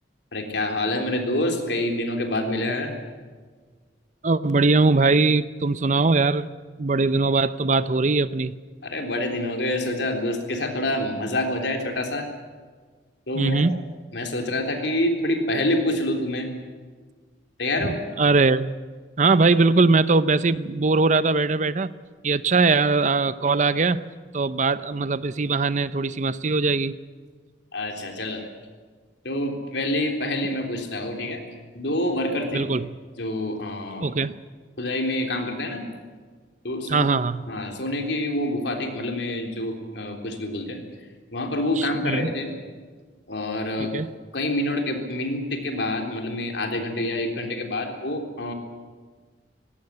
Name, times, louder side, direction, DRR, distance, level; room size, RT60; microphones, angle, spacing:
voice 1, 0.3-2.9 8.8-12.3 13.3-13.6 14.1-16.5 17.6-17.9 27.7-28.4 29.2-31.4 31.7-32.7 33.2-34.1 34.8-35.8 36.6-37.1 37.5-40.8 41.3-42.5 43.3-44.0 44.3-48.5, left 1 dB, 70° left, 3 dB, 3.6 m, -27 dB
voice 2, 4.2-6.5 6.8-8.6 13.3-13.8 18.2-18.7 19.2-21.9 22.2-24.0 24.3-26.9 32.5-33.0 34.0-34.3 36.9-37.4 41.8-42.3 43.8-44.1, right 3 dB, 40° right, 15 dB, 0.6 m, -21 dB
19.5 x 17.5 x 9.8 m, 1.5 s
head